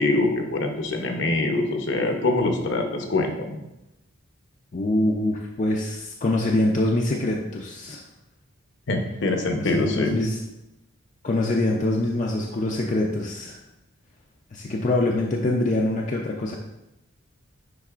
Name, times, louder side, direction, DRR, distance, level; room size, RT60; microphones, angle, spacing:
voice 1, 0.0-3.6 8.9-10.2, left 2 dB, 60° left, 4 dB, 0.8 m, -24 dB
voice 2, 4.7-8.0 9.5-10.4 11.2-13.6 14.5-16.5, left 1 dB, 35° left, -1 dB, 0.5 m, -24 dB
10.0 x 4.0 x 2.4 m, 0.91 s
head